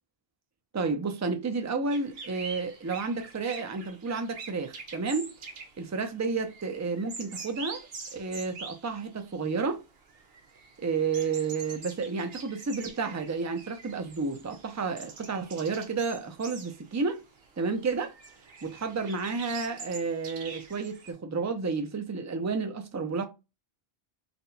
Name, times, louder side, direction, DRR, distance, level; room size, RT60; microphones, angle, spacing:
voice 1, 0.7-5.3 5.8-9.8 10.8-17.2 17.6-18.1 18.6-23.2, right 4 dB, 25° right, 0.4 m, -31 dB
sound 1, 1.9-9.7 9.9-21.1, right 4 dB, 70° right, 1.1 m, -45 dB
4.2 x 2.2 x 3.9 m
omnidirectional pair, 1.0 m